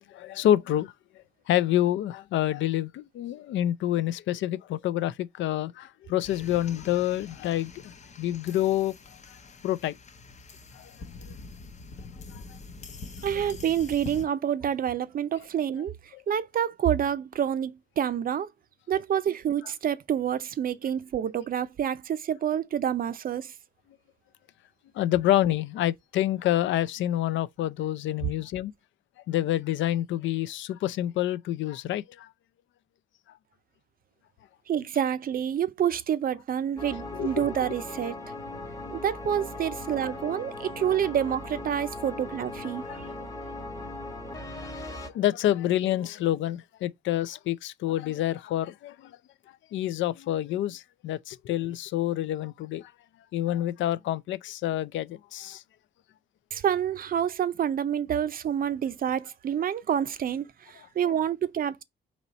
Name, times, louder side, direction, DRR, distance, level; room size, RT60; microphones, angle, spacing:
voice 1, 0.1-0.9 1.5-8.9 9.6-10.0 10.8-10.9 12.3-12.4 13.4-13.5 16.1-16.2 25.0-28.7 29.3-32.3 37.2-37.5 42.9-43.0 44.7-49.2 49.7-52.9 53.3-55.6, left 13 dB, 70° left, 0.4 m, -28 dB
sound 1, 6.2-14.2, left 3 dB, 35° left, 0.7 m, -45 dB
voice 2, 13.2-18.5 18.9-23.5 34.7-38.2 38.9-42.8 56.5-61.8, right 9 dB, 45° right, 0.5 m, -28 dB
sound 2, 36.8-45.1, left 2 dB, 15° left, 1.0 m, -38 dB
4.0 x 3.0 x 4.1 m
cardioid pair, 90°, 20 cm